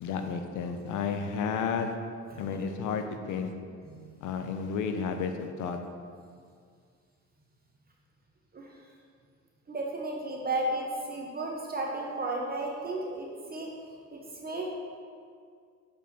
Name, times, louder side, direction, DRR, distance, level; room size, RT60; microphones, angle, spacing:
voice 1, 0.0-2.0 2.4-3.5 4.2-5.8, left 6 dB, 85° left, 6 dB, 0.7 m, -32 dB
voice 2, 9.7-13.7 14.1-14.7, right 2 dB, 30° right, -2 dB, 1.0 m, -34 dB
7.1 x 5.4 x 4.2 m, 2.2 s
cardioid pair, 90°, 30 cm